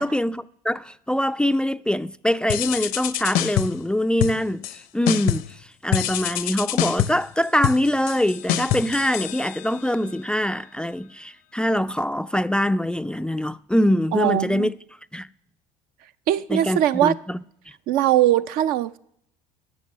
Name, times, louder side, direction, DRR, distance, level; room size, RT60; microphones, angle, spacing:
voice 1, 0.0-5.6 5.8-14.7 15.1-15.3 16.5-17.4, left 1 dB, 5° left, 0.4 m, -23 dB
sound 1, 2.5-3.9 4.2-4.8 5.1-5.6 5.9-9.9, left 12 dB, 60° left, 0.7 m, -26 dB
voice 2, 14.1-14.7 16.3-17.2 17.9-19.0, right 12 dB, 65° right, 0.6 m, -20 dB
11.0 x 6.0 x 7.4 m
hypercardioid pair, 75°, 16 cm